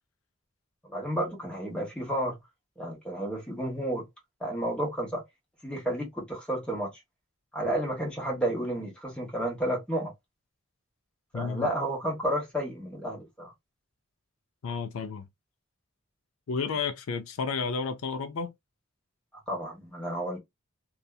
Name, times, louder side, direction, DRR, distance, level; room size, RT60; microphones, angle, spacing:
voice 1, 0.8-2.4 2.8-4.1 4.4-5.2 5.6-6.9 7.5-10.1 11.3-13.5 19.5-20.4, right 1 dB, 5° left, 1.2 m, -31 dB
voice 2, 11.3-11.7 14.6-15.3 16.5-18.5, left 5 dB, 80° left, 0.4 m, -32 dB
2.7 x 2.4 x 2.3 m
head